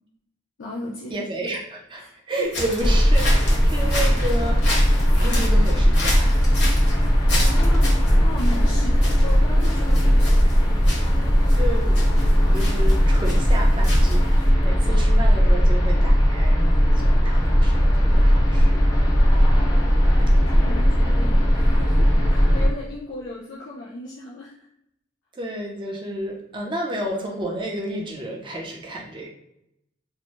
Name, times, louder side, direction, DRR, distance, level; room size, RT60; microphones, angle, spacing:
voice 1, 0.6-1.5 2.0-2.5 7.4-10.6 11.2-11.4 19.8-24.5, left 2 dB, 85° left, -4 dB, 0.5 m, -36 dB
voice 2, 1.1-4.7 5.2-6.3 11.5-18.9 25.3-29.3, right 1 dB, 25° right, 0 dB, 0.5 m, -31 dB
sound 1, 2.5-14.5, left 1 dB, 60° left, 0.9 m, -32 dB
sound 2, 2.8-22.7, equal, 20° left, 0.6 m, -18 dB
2.6 x 2.1 x 3.0 m, 0.79 s
head